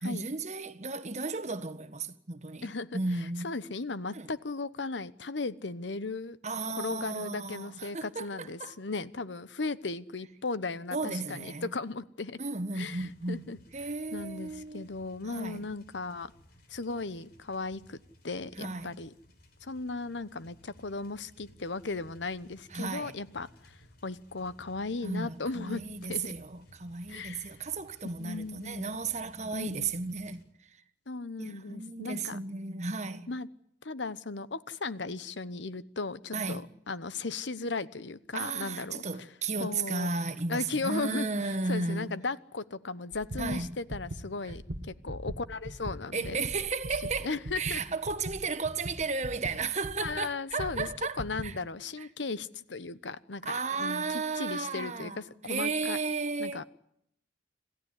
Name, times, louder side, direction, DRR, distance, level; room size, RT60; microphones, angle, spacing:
voice 1, 0.0-3.5 4.1-4.3 6.4-8.7 10.9-11.7 12.4-14.8 15.3-15.6 18.6-19.0 22.7-23.1 25.0-30.4 31.4-33.3 36.3-36.7 38.3-42.1 43.4-43.8 44.4-44.5 46.1-51.6 52.0-52.1 53.4-56.6, right 4 dB, 40° right, 1.6 m, -34 dB
voice 2, 2.6-6.4 6.8-12.4 12.7-13.6 14.1-16.3 16.7-18.0 18.2-19.1 19.6-26.3 27.1-27.6 28.2-29.0 29.5-30.0 31.1-32.4 33.3-33.5 33.8-39.3 39.6-40.1 40.5-46.4 47.2-47.8 50.0-50.9 51.2-56.0 56.4-56.6, left 3 dB, 85° left, 1.0 m, -36 dB
sound 1, 12.8-30.4, equal, 55° left, 4.0 m, -59 dB
sound 2, 43.1-50.2 50.6-51.5, right 1 dB, 85° right, 1.8 m, -40 dB
27.5 x 15.0 x 9.7 m
head